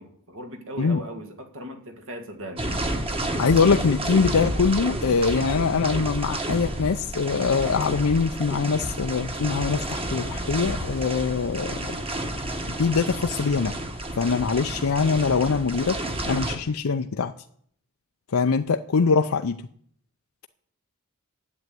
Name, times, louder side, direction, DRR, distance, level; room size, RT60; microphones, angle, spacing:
voice 1, 0.0-2.7, equal, 65° right, 6 dB, 1.9 m, -38 dB
sound 1, 2.6-16.6, right 1 dB, 25° right, 1.5 m, -30 dB
voice 2, 3.4-11.7 12.8-13.7 14.2-16.0 16.3-17.3 18.3-19.6, left 5 dB, 75° left, 7 dB, 0.6 m, -23 dB
11.0 x 7.9 x 9.4 m, 0.64 s
head